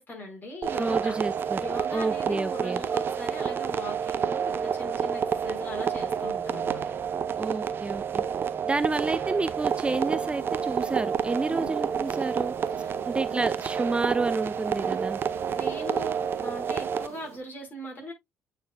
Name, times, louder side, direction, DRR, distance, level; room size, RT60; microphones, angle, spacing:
voice 1, 0.0-1.2 1.6-6.8 11.4-11.7 12.8-13.0 13.3-13.4 14.9-15.0 15.5-18.1, equal, 35° left, 5.2 m, -40 dB
sound 1, 0.6-17.1, right 7 dB, 45° right, 0.8 m, -29 dB
voice 2, 0.8-1.6 1.9-2.8 7.4-8.2 8.6-12.5 13.1-15.2, right 3 dB, 20° right, 0.5 m, -30 dB
sound 2, 9.6-17.4, right 8 dB, 70° right, 1.7 m, -46 dB
8.9 x 5.5 x 2.4 m
figure-of-eight pair, 50°, 5 cm